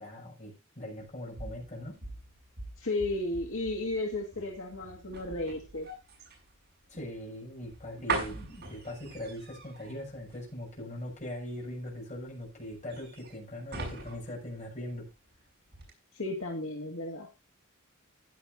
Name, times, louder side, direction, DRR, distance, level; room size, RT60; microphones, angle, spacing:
voice 1, 0.0-2.0 6.9-15.1, left 1 dB, 35° left, 0 dB, 7.0 m, -41 dB
sound 1, 1.0-15.3 15.7-15.9, right 3 dB, 50° right, 6.3 m, -42 dB
voice 2, 2.8-5.9 16.1-17.3, left 2 dB, 65° left, 0 dB, 2.4 m, -34 dB
16.0 x 10.5 x 2.6 m, 0.25 s
head